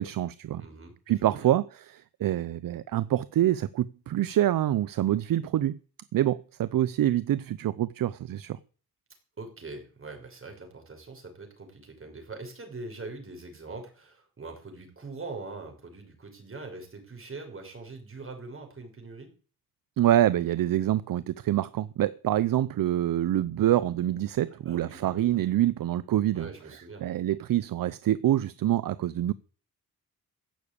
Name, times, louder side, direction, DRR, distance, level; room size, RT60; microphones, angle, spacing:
voice 1, 0.0-0.6 1.1-5.8 6.1-8.6 20.0-26.5 27.0-29.3, right 12 dB, 65° right, 0.7 m, -26 dB
voice 2, 0.6-1.5 9.4-19.3 24.5-25.3 26.3-27.0, right 3 dB, 35° right, 6.0 m, -43 dB
15.5 x 7.0 x 8.4 m
cardioid pair, 85°, 37 cm